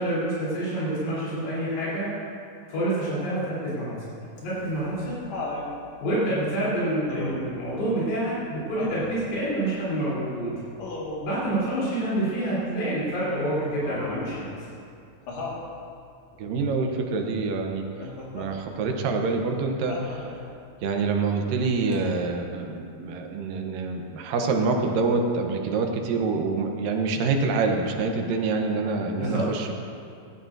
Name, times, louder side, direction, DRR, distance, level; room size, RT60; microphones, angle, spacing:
voice 1, 0.0-2.1 2.7-3.9 4.4-5.2 6.0-10.5 11.2-14.5 29.2-29.4, right 1 dB, 85° left, -10 dB, 5.4 m, -27 dB
Laughter, 4.4-5.7 7.1-7.6 8.7-9.2 10.8-11.3 13.8-14.3 15.3-15.6 18.0-18.5 19.9-20.5 21.9-22.0, left 2 dB, 55° left, 2.7 m, -35 dB
voice 2, 16.4-29.7, right 4 dB, 75° right, 3 dB, 2.4 m, -26 dB
16.5 x 13.5 x 2.6 m, 2.5 s
omnidirectional pair, 4.3 m